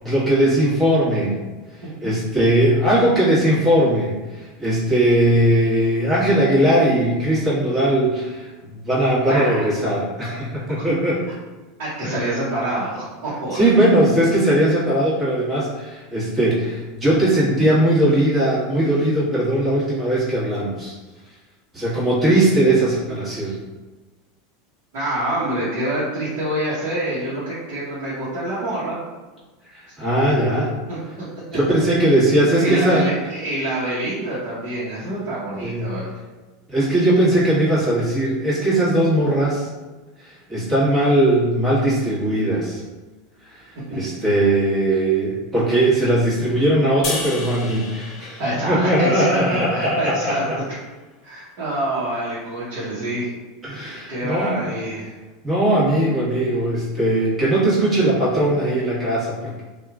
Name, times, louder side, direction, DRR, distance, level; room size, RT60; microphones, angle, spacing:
voice 1, 0.0-1.3 2.0-11.2 12.0-12.1 13.5-20.9 21.7-23.6 29.7-30.7 31.5-33.1 35.6-35.9 36.7-39.7 40.2-42.8 43.5-43.6 43.9-50.5 53.6-54.7 55.4-59.6, right 1 dB, 20° right, -8 dB, 1.5 m, -19 dB
voice 2, 9.3-9.7 10.9-11.0 11.8-13.7 24.9-29.0 30.9-31.3 31.5-31.6 32.6-36.1 43.9-44.0 48.4-50.4 51.2-53.3 54.1-55.1, right 1 dB, 60° right, -9 dB, 1.0 m, -26 dB
sound 1, 47.0-50.3, left 2 dB, 45° left, 0.9 m, -33 dB
2.8 x 2.4 x 2.4 m, 1.2 s
hypercardioid pair, 85°, 0 cm